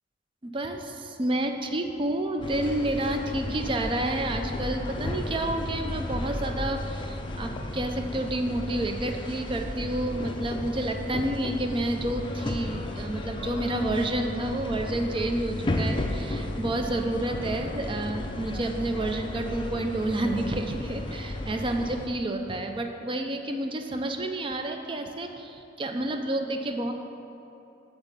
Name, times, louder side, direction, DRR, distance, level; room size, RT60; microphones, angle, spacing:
voice 1, 0.4-26.9, right 1 dB, 30° right, 5 dB, 0.5 m, -29 dB
sound 1, 2.4-22.1, left 1 dB, 25° left, 0.5 m, -34 dB
8.0 x 3.6 x 6.6 m, 2.8 s
head